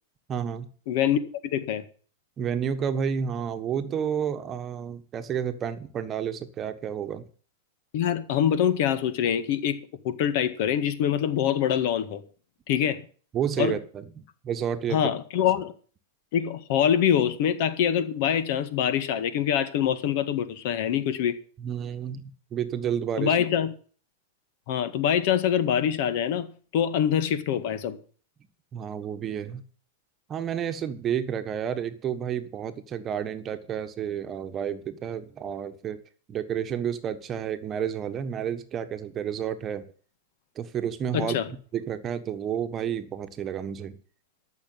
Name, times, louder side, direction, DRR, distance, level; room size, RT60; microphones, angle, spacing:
voice 1, 0.3-0.7 2.4-7.3 13.3-15.1 21.6-23.3 28.7-29.6 30.3-36.0 36.3-39.9 40.5-41.4 41.7-44.0, right 8 dB, 25° right, 1.3 m, -30 dB
voice 2, 0.9-1.2 1.5-1.8 7.9-12.2 12.7-13.1 13.6-13.8 14.9-15.7 16.3-21.4 23.2-23.7 24.7-26.5 26.7-28.0 41.1-41.5, left 9 dB, 55° left, 1.8 m, -24 dB
13.0 x 6.6 x 9.3 m
hypercardioid pair, 125°, 0 cm